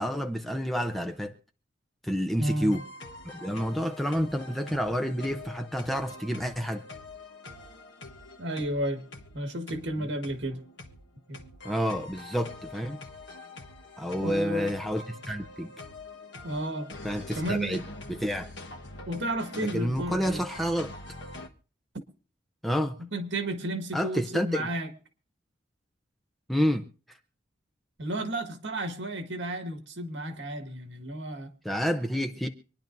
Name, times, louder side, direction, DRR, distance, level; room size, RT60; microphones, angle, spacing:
voice 1, 0.0-1.3 2.0-2.8 3.3-6.8 10.0-10.1 11.6-13.0 14.0-15.7 17.0-17.8 18.1-18.5 19.5-20.9 22.6-23.0 23.9-24.7 26.5-26.9 31.6-32.5, equal, ahead, 0.6 m, -29 dB
voice 2, 2.4-2.8 8.4-9.0 9.3-10.6 11.3-11.4 14.2-14.7 16.4-16.9 17.3-17.8 19.1-20.4 23.0-24.9 28.0-31.5, right 1 dB, 70° right, 1.7 m, -32 dB
sound 1, 2.6-21.5, left 2 dB, 65° left, 1.3 m, -45 dB
26.0 x 10.5 x 2.6 m
head